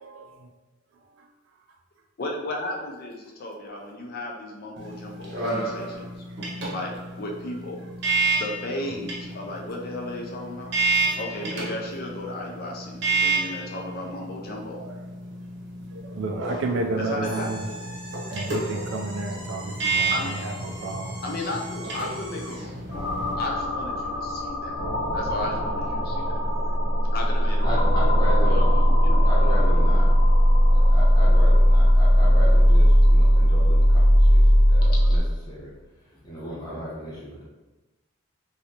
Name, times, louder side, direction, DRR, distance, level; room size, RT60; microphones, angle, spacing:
voice 1, 0.0-0.3 1.1-1.2 4.8-5.4 10.9-11.2 14.8-15.0 15.9-17.6 18.3-21.2, right 3 dB, 75° right, 3 dB, 0.4 m, -32 dB
voice 2, 2.2-6.1 6.7-6.9 7.2-7.8 8.4-10.7 11.2-14.8 17.0-17.9 20.1-20.4 21.2-22.8 23.4-24.8 25.1-26.5 27.1-30.0 34.9-35.1, left 1 dB, 45° left, -1 dB, 0.5 m, -35 dB
sound 1, 4.8-23.3, right 3 dB, 55° right, 0.9 m, -30 dB
sound 2, 17.2-22.8, equal, 20° right, 0.7 m, -42 dB
sound 3, 22.9-35.2, equal, 80° left, 0.9 m, -18 dB
voice 3, 27.3-30.1 30.7-35.7 36.1-37.4, equal, 20° left, -7 dB, 0.9 m, -35 dB
3.1 x 2.8 x 2.8 m, 1.1 s
head